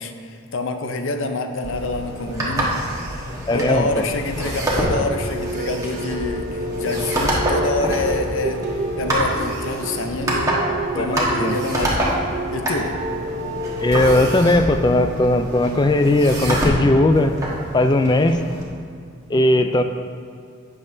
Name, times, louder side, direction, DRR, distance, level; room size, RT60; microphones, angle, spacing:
voice 1, 0.0-2.8 3.5-10.6 11.0-12.0 12.5-12.9, left 2 dB, 60° left, 6 dB, 0.6 m, -27 dB
sound 1, 1.6-18.6, right 1 dB, 15° right, 1.3 m, -26 dB
voice 2, 3.5-4.0 10.9-11.6 13.8-17.3 17.7-18.4 19.3-19.8, left 1 dB, 20° left, 7 dB, 0.3 m, -18 dB
sound 2, 4.8-14.5, right 1 dB, 30° right, 0.6 m, -29 dB
10.5 x 8.6 x 2.7 m, 2.3 s
head